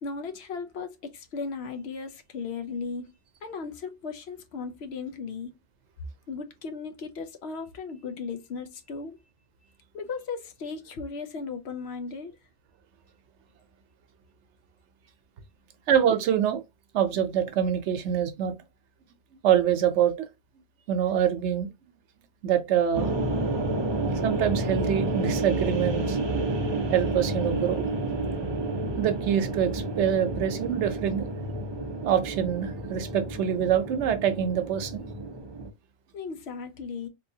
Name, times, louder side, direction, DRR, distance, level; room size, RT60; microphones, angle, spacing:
voice 1, 0.0-3.1 3.4-5.5 6.3-9.2 9.9-12.3 36.1-37.1, left 5 dB, 70° left, 0.9 m, -36 dB
voice 2, 15.9-16.6 16.9-18.5 19.4-20.1 20.9-21.7 22.4-23.1 24.2-26.2 26.9-27.9 29.0-31.2 32.0-35.0, right 9 dB, 80° right, 0.9 m, -25 dB
sound 1, 22.9-35.7, right 2 dB, 45° right, 0.3 m, -30 dB
3.6 x 2.7 x 2.7 m
omnidirectional pair, 1.2 m